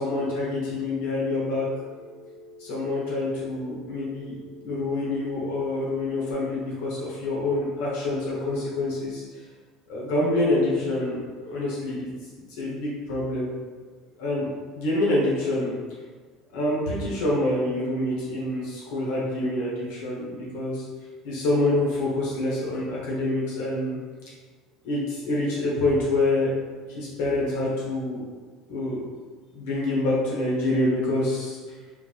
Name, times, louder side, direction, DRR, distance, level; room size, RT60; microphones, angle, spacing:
voice 1, 0.0-1.7 2.6-9.4 9.9-12.1 12.5-13.5 14.2-14.5 14.7-15.7 16.5-20.9 21.2-24.0 24.8-26.6 26.9-28.2 28.7-29.0 29.5-31.6, left 2 dB, 80° left, -5 dB, 1.0 m, -26 dB
Telephone, 1.3-6.3, left 3 dB, 35° right, 1.5 m, -48 dB
3.9 x 2.4 x 2.9 m, 1.5 s
cardioid pair, 145°, 0 cm